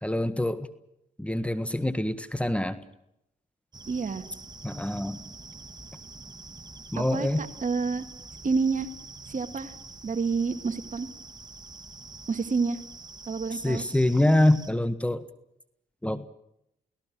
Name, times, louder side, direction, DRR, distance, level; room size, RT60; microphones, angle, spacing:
voice 1, 0.0-0.7 1.2-2.8 4.6-5.2 6.9-7.5 13.6-15.2 16.0-16.3, left 1 dB, 5° left, 12 dB, 1.6 m, -25 dB
sound 1, 3.7-14.7, right 3 dB, 25° right, 2.3 m, -46 dB
voice 2, 3.9-4.2 7.0-8.0 8.4-8.9 9.3-9.7 10.0-11.1 12.3-12.8 13.3-13.9, right 4 dB, 45° right, 10 dB, 2.1 m, -28 dB
30.0 x 17.5 x 6.2 m, 0.80 s
supercardioid pair, 55°, 18 cm